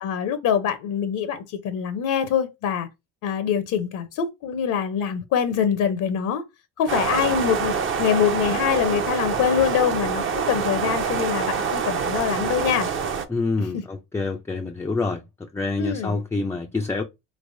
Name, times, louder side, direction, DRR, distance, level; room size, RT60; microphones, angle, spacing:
voice 1, 0.0-2.9 3.2-6.4 6.8-12.9 13.7-13.8 15.8-16.2, left 8 dB, 60° left, 0.7 m, -24 dB
sound 1, 6.9-13.3, right 6 dB, 35° right, 0.6 m, -26 dB
voice 2, 13.3-17.0, left 3 dB, 10° left, 0.3 m, -27 dB
3.3 x 3.0 x 2.6 m
supercardioid pair, 80°, 36 cm